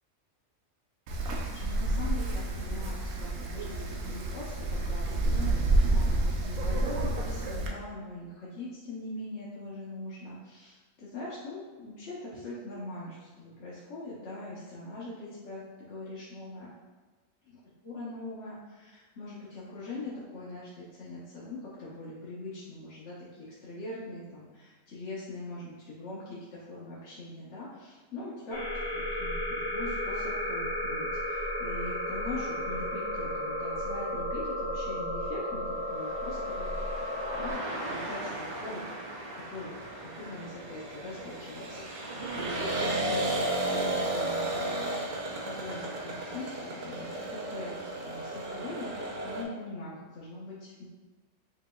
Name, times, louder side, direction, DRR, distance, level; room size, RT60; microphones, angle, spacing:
Wind, 1.1-7.7, right 2 dB, 80° right, 1.0 m, -29 dB
voice 1, 1.2-16.7 17.4-28.6 28.9-38.8 39.3-39.7 40.0-50.8, left 2 dB, 65° left, -8 dB, 1.0 m, -42 dB
sound 1, 28.5-37.5, left 1 dB, 35° left, 1.8 m, -33 dB
sound 2, 36.0-49.4, right 1 dB, 50° right, 0.5 m, -34 dB
5.0 x 2.9 x 2.2 m, 1.3 s
omnidirectional pair, 1.3 m